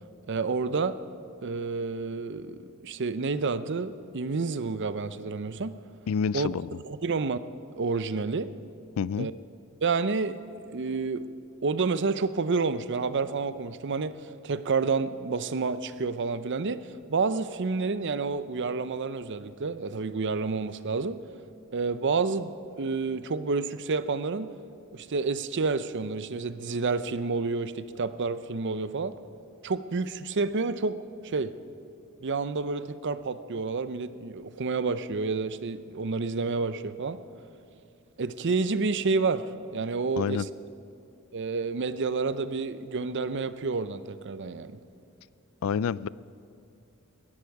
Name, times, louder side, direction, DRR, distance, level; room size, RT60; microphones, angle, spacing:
voice 1, 0.3-1.0 1.4-5.8 6.3-6.5 6.8-7.4 7.8-8.5 9.2-9.3 9.8-10.4 10.7-11.3 11.6-16.8 17.1-21.2 21.7-24.5 24.9-29.2 29.6-31.0 31.2-31.5 32.2-37.2 38.2-40.5 41.3-44.7, right 4 dB, 55° right, 13 dB, 0.6 m, -29 dB
voice 2, 6.1-6.7 9.0-9.3 40.2-40.5 45.6-46.1, left 6 dB, 75° left, 20 dB, 0.3 m, -28 dB
18.5 x 13.5 x 4.8 m, 2.8 s
head